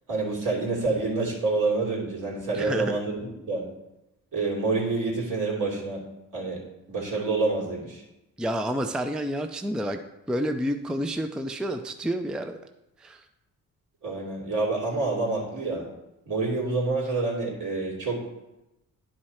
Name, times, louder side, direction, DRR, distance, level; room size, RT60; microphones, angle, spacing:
voice 1, 0.1-3.6 4.3-6.0 6.3-6.6 6.9-8.0 14.0-15.9 16.3-18.2, right 3 dB, 60° right, -4 dB, 3.0 m, -27 dB
voice 2, 2.5-3.0 8.4-10.0 10.3-12.6 13.0-13.2, equal, ahead, 7 dB, 0.4 m, -29 dB
10.0 x 4.6 x 4.3 m, 0.93 s
cardioid pair, 75°, 35 cm